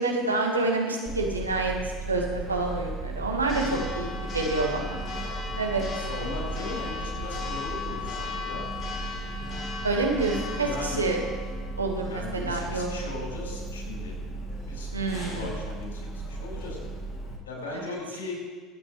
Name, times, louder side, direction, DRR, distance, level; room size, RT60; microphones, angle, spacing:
voice 1, 0.0-1.7 2.1-4.1 4.3-5.0 5.5-5.8 9.8-11.2 11.8-13.1 14.9-15.5 17.7-17.9, right 3 dB, 90° right, 0 dB, 1.6 m, -28 dB
Church bell, 1.1-17.4, equal, 40° left, 2.3 m, -34 dB
voice 2, 6.1-8.6 10.6-11.0 12.1-14.1 14.6-14.9 15.3-16.8 17.4-18.4, left 3 dB, 75° left, -2 dB, 4.6 m, -38 dB
24.0 x 8.8 x 3.3 m, 1.5 s
figure-of-eight pair, 65°, 0 cm